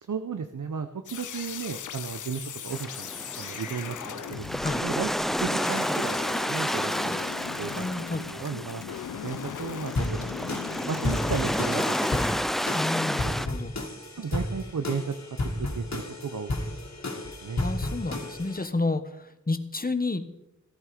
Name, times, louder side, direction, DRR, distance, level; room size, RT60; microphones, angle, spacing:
voice 1, 0.1-6.2 6.4-7.2 7.6-7.9 8.1-8.8 9.2-12.6 13.2-13.3 14.2-15.1 15.6-16.5 17.1-17.6, right 6 dB, 75° right, 8 dB, 0.9 m, -35 dB
sound 1, 1.1-12.3, left 9 dB, 80° left, 0.5 m, -39 dB
sound 2, 2.7-13.5, equal, ahead, 0.4 m, -30 dB
voice 2, 7.7-8.4 12.7-13.7 17.6-20.3, left 3 dB, 30° left, 10 dB, 1.3 m, -30 dB
sound 3, 9.9-18.6, left 2 dB, 60° left, 2.3 m, -33 dB
17.0 x 11.5 x 5.0 m, 0.88 s
wide cardioid pair, 60°, 30 cm